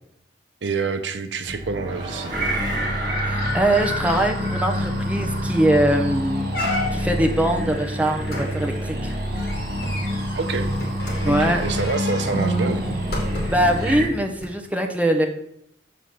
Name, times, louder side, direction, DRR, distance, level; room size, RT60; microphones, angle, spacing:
voice 1, 0.6-2.4 10.3-10.7 11.3-12.8, right 4 dB, 75° right, 8 dB, 0.7 m, -27 dB
sound 1, 1.5-5.5, right 1 dB, 25° right, 1.3 m, -36 dB
sound 2, 2.3-14.1, equal, 55° right, 2.5 m, -26 dB
voice 2, 3.2-6.4 6.9-9.1 11.2-11.6 13.5-15.3, right 1 dB, 10° right, 3 dB, 0.9 m, -22 dB
sound 3, 5.2-5.5 5.9-6.0 6.5-7.2 8.3-13.7 14.4-14.5, equal, 60° left, 2.6 m, -30 dB
7.0 x 4.9 x 6.0 m, 0.72 s
head